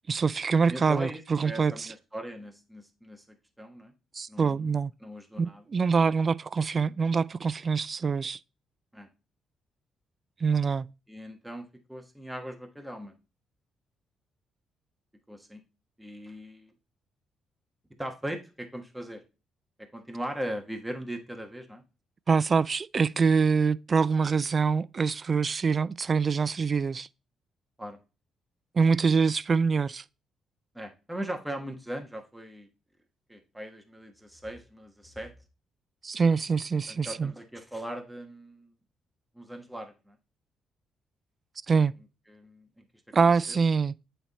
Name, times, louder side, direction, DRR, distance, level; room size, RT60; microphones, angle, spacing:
voice 1, 0.1-1.9 4.1-4.9 5.4-8.4 10.4-10.9 22.3-27.1 28.8-30.0 36.0-37.3 41.7-41.9 43.1-43.9, right 5 dB, 40° right, 0.3 m, -25 dB
voice 2, 0.7-3.9 4.3-5.6 8.9-9.1 11.1-13.2 15.3-15.6 16.0-16.7 18.0-19.2 19.8-21.8 27.8-28.0 30.7-32.7 33.3-35.3 36.9-38.7 39.3-40.2 42.3-42.8 43.2-43.6, right 1 dB, 5° right, 1.3 m, -39 dB
8.7 x 3.5 x 4.0 m
cardioid pair, 90°, 0 cm